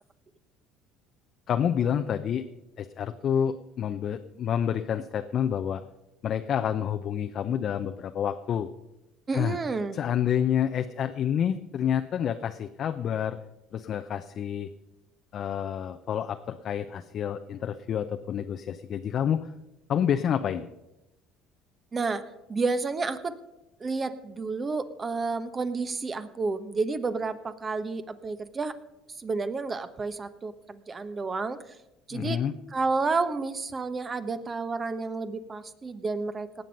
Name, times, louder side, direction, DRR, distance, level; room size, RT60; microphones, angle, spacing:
voice 1, 1.5-2.4 2.8-5.8 6.2-8.7 9.3-9.6 9.9-13.4 13.7-14.7 15.3-19.5 19.9-20.7 32.1-32.5, left 9 dB, 50° left, 7 dB, 0.7 m, -28 dB
voice 2, 9.3-10.0 21.9-22.2 22.5-23.4 23.8-28.7 29.2-31.6 32.1-32.4 32.7-36.6, right 4 dB, 30° right, 11 dB, 1.1 m, -30 dB
18.5 x 7.8 x 5.4 m, 0.95 s
hypercardioid pair, 75°, 0 cm